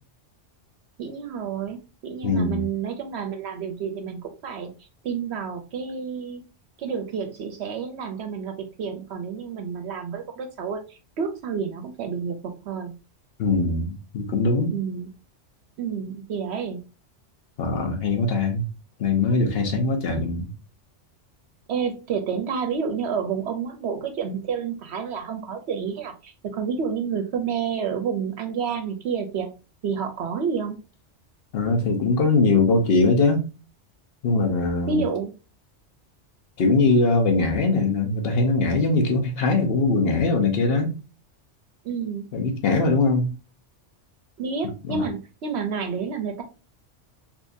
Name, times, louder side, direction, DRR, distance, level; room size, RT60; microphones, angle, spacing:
voice 1, 1.0-6.4 6.8-12.9 14.7-15.1 15.8-16.8 21.7-29.5 29.8-30.8 34.9-35.3 41.8-42.3 44.4-46.4, right 6 dB, 70° right, 0.8 m, -29 dB
voice 2, 2.2-2.7 13.4-14.7 17.6-18.6 19.0-20.5 31.5-33.5 34.2-35.0 36.6-41.0 42.3-43.3 44.9-45.1, left 3 dB, 60° left, 1.0 m, -21 dB
3.5 x 2.8 x 2.6 m
omnidirectional pair, 1.2 m